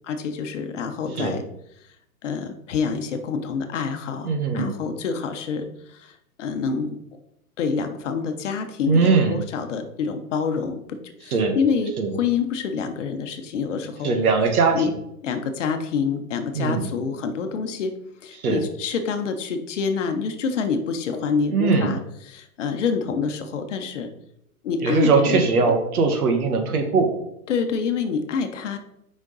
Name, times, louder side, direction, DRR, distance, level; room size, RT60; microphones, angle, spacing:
voice 1, 0.0-1.4 2.2-7.0 7.6-14.1 14.7-14.9 15.2-17.9 18.2-24.1 24.6-25.4 27.5-28.8, left 5 dB, 55° left, 7 dB, 1.0 m, -27 dB
voice 2, 4.2-4.7 8.9-9.4 11.3-11.6 12.0-12.1 14.0-14.9 16.5-16.9 18.4-18.6 21.5-21.9 24.8-27.1, right 4 dB, 70° right, 5 dB, 1.7 m, -20 dB
6.3 x 5.2 x 4.0 m, 0.77 s
hypercardioid pair, 165°, 45 cm